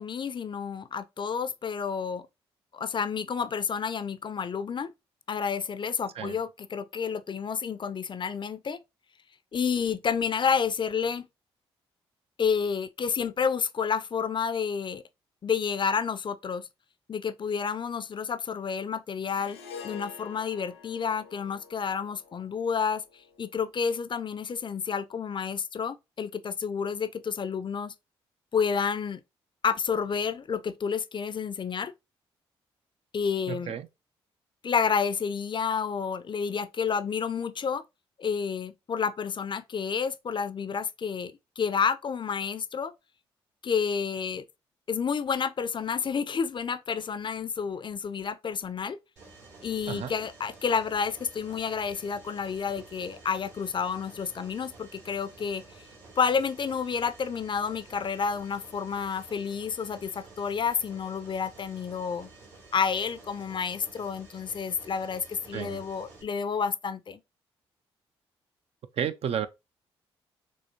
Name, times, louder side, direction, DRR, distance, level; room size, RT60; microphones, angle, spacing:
voice 1, 0.0-2.3 2.7-4.9 5.3-8.8 9.5-11.3 12.4-15.0 15.4-16.7 17.1-23.0 23.4-27.9 28.5-29.2 29.6-31.9 33.1-33.7 34.6-37.8 38.2-42.9 43.6-44.4 44.9-49.0 49.6-55.6 56.2-62.3 62.7-67.2, left 6 dB, 40° left, 0.5 m, -30 dB
Harp, 19.3-23.7, left 6 dB, 90° left, 0.6 m, -47 dB
voice 2, 33.5-33.9 49.9-50.1 65.5-65.8 68.9-69.5, right 8 dB, 50° right, 0.5 m, -32 dB
Mechanisms, 49.2-66.2, right 3 dB, 65° right, 2.5 m, -51 dB
6.2 x 2.9 x 2.7 m
hypercardioid pair, 45°, 13 cm